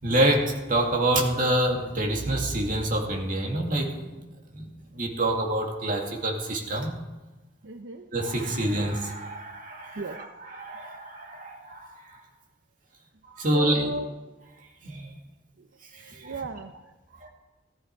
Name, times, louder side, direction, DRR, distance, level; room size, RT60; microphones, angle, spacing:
voice 1, 0.0-4.2 4.5-6.9 8.1-12.2 13.3-13.9 14.8-15.2 15.9-16.3 17.1-17.3, right 1 dB, 45° right, 1 dB, 2.3 m, -27 dB
voice 2, 7.6-8.1 10.0-10.3 13.5-14.1 15.6-15.7 15.9-16.9, right 3 dB, 75° right, 6 dB, 0.7 m, -36 dB
14.5 x 14.0 x 4.7 m, 1.1 s
head